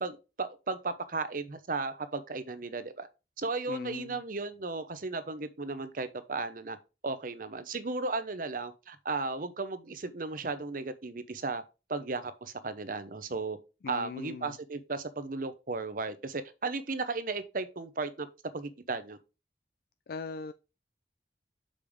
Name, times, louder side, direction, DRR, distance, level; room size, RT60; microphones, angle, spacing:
voice 1, 0.0-3.1 3.4-6.8 7.0-11.6 11.9-13.6 13.9-18.3 18.5-19.2, right 3 dB, 50° right, 0.8 m, -35 dB
voice 2, 3.7-4.2 13.8-14.6 20.1-20.5, left 4 dB, 60° left, 0.4 m, -40 dB
6.8 x 5.1 x 3.6 m
head